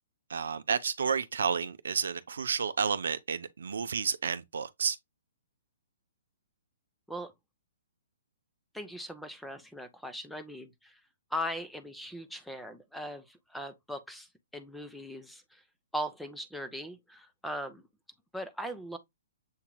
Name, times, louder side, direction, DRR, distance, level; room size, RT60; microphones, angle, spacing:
voice 1, 0.3-5.0, right 6 dB, 70° right, 0.5 m, -31 dB
voice 2, 8.7-11.0 11.3-15.6 15.9-17.9 18.3-19.0, equal, ahead, 0.7 m, -39 dB
7.4 x 2.8 x 2.3 m
figure-of-eight pair, 125°, 0 cm